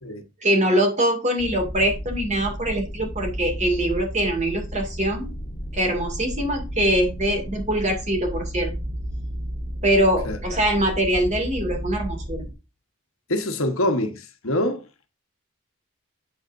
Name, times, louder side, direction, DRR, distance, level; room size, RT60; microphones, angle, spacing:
voice 1, 0.4-5.3 5.7-8.7 9.8-12.4, right 1 dB, 30° right, 2.3 m, -23 dB
sound 1, 1.4-12.5, equal, 20° left, 1.7 m, -33 dB
voice 2, 13.3-14.9, left 1 dB, 65° left, 1.3 m, -25 dB
8.2 x 7.9 x 2.6 m
head